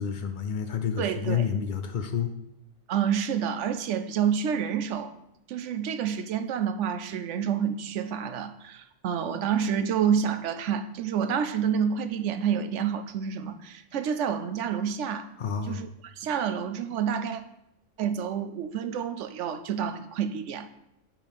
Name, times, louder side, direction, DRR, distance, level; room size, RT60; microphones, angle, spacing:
voice 1, 0.0-2.3 15.4-15.9, left 7 dB, 80° left, 7 dB, 0.4 m, -29 dB
voice 2, 1.0-1.5 2.9-5.1 5.5-15.3 15.6-17.4 18.0-20.7, right 8 dB, 65° right, 10 dB, 0.8 m, -28 dB
6.4 x 5.8 x 5.2 m, 0.84 s
omnidirectional pair, 1.5 m